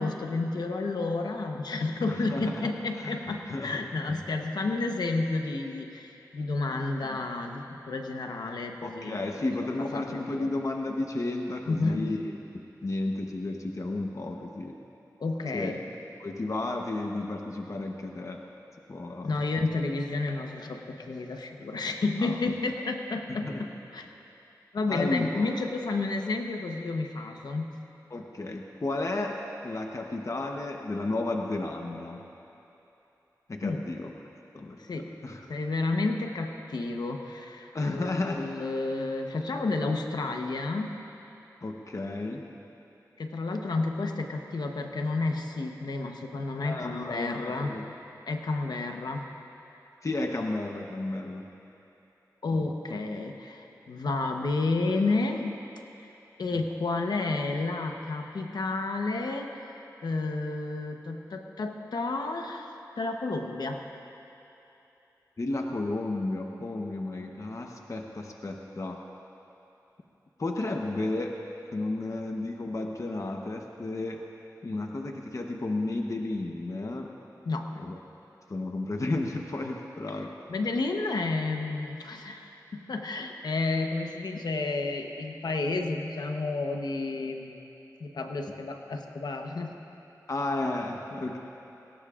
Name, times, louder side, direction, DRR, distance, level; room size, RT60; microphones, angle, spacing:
voice 1, 0.0-9.2 9.8-10.5 11.7-12.1 15.2-15.8 19.2-24.1 24.7-27.8 33.6-33.8 34.8-35.1 35.5-41.0 43.2-47.7 48.3-49.3 52.4-55.6 56.0-56.1 56.4-62.7 63.0-63.8 77.4-77.8 80.5-87.7 88.0-89.8, left 3 dB, 80° left, 4 dB, 1.0 m, -31 dB
voice 2, 2.1-2.7 3.0-3.2 3.5-3.8 4.1-4.2 7.0-7.2 8.8-14.8 15.5-15.8 16.2-18.4 18.9-19.4 22.2-22.4 23.3-23.6 24.9-25.5 28.1-29.4 29.6-32.2 33.5-34.1 34.5-35.4 37.7-38.5 41.6-42.4 46.6-47.9 50.0-51.4 52.5-52.7 52.9-53.0 56.5-56.6 65.4-69.0 70.4-71.3 71.7-74.2 74.6-77.1 77.8-78.0 78.5-80.3 90.3-91.4, left 2 dB, 50° left, 2 dB, 1.0 m, -33 dB
22.0 x 17.5 x 2.5 m, 2.9 s
cardioid pair, 50°, 7 cm